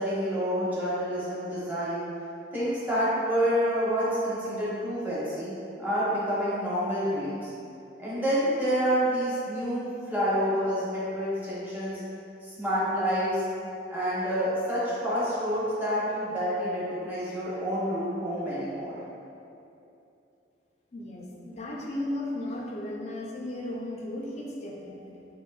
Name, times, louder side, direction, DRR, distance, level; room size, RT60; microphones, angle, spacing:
voice 1, 0.0-2.1 2.5-5.5 5.8-7.5 8.0-12.0 12.4-13.4 13.9-19.0, equal, 10° right, -11 dB, 0.9 m, -28 dB
voice 2, 20.9-25.3, left 1 dB, 35° left, -2 dB, 0.4 m, -35 dB
3.6 x 2.9 x 2.3 m, 2.8 s
head